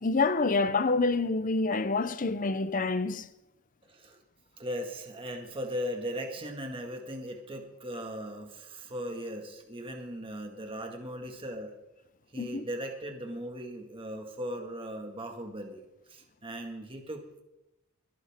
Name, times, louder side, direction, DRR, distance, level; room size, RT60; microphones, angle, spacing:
voice 1, 0.0-3.3 12.4-12.6, left 3 dB, 40° left, 0.7 m, -27 dB
voice 2, 3.9-4.2 4.6-11.7 12.3-17.4, equal, 25° right, 1.9 m, -38 dB
22.5 x 13.5 x 3.7 m
head